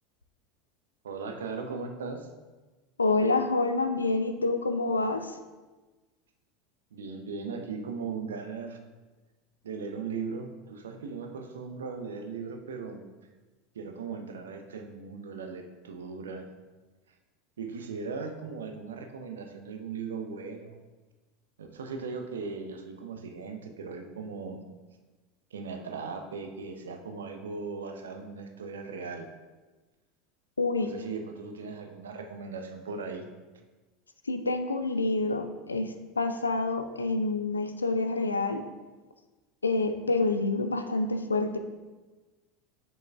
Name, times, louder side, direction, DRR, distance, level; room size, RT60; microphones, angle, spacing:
voice 1, 1.0-2.3 6.9-8.8 9.6-13.0 13.7-16.5 17.6-20.8 21.6-24.6 25.5-29.3 30.8-33.3, right 5 dB, 70° right, 5 dB, 0.6 m, -38 dB
voice 2, 3.0-5.4 30.6-30.9 34.3-38.6 39.6-41.6, left 3 dB, 80° left, 8 dB, 0.4 m, -27 dB
7.0 x 6.1 x 2.3 m, 1.2 s
figure-of-eight pair, 75°, 0 cm